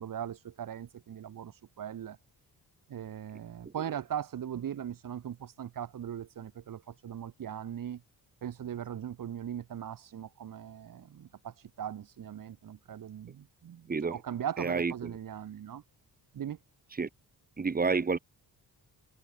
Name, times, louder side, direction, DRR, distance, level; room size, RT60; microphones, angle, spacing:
voice 1, 0.0-2.2 2.9-8.0 8.4-15.8 16.3-16.6, right 9 dB, 55° right, 4.0 m, -39 dB
voice 2, 14.6-14.9 17.0-17.1 17.6-18.2, right 4 dB, 20° right, 2.6 m, -28 dB
wide cardioid pair, 180°, 39 cm